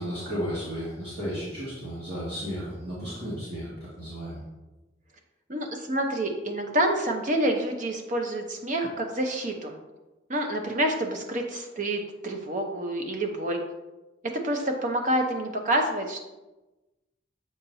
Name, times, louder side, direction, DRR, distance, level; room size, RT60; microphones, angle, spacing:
voice 1, 0.0-4.4, equal, 55° right, -9 dB, 2.0 m, -34 dB
voice 2, 5.5-9.8 10.3-13.6 14.4-16.2, right 1 dB, 40° right, 3 dB, 0.8 m, -28 dB
7.3 x 5.6 x 2.7 m, 1.1 s
head